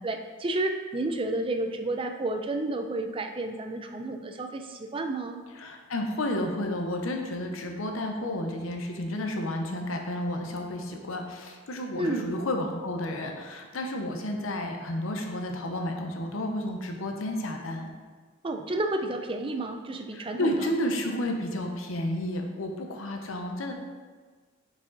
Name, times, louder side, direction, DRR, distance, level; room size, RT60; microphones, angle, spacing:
voice 1, 0.0-5.4 12.0-12.3 18.4-20.7, right 2 dB, 25° right, 6 dB, 0.4 m, -31 dB
voice 2, 5.6-17.9 20.1-23.7, left 1 dB, 75° left, 3 dB, 0.7 m, -31 dB
5.8 x 4.8 x 3.9 m, 1.5 s
head